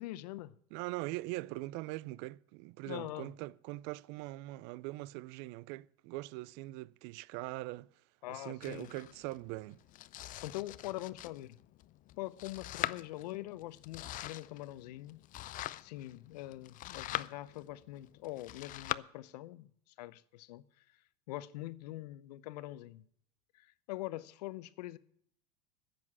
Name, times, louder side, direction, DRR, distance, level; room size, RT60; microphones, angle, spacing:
voice 1, 0.0-0.5 2.9-3.3 8.2-8.9 10.4-11.6 12.2-15.3 15.8-21.0 21.3-23.0 23.5-25.0, left 16 dB, 70° left, 0.7 m, -44 dB
voice 2, 0.7-7.9 8.3-9.8, right 20 dB, 55° right, 0.5 m, -42 dB
Domestic sounds home sounds, 8.6-19.0, left 15 dB, 40° left, 0.5 m, -43 dB
10.5 x 7.9 x 9.9 m
hypercardioid pair, 90°, 21 cm